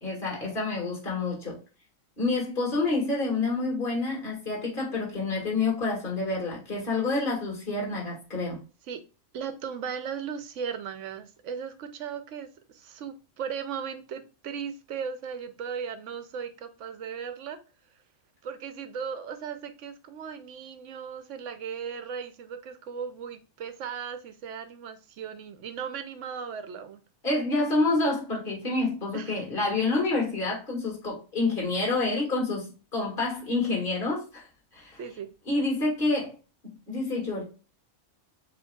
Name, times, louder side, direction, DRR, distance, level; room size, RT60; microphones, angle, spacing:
voice 1, 0.0-1.6 2.2-8.6 27.2-34.5 34.7-35.0 35.5-36.3 36.6-37.4, left 3 dB, 40° left, 2.0 m, -28 dB
voice 2, 9.3-17.6 18.4-27.0 29.1-29.4 35.0-35.3, right 7 dB, 70° right, 1.0 m, -37 dB
6.9 x 3.1 x 2.3 m
omnidirectional pair, 1.4 m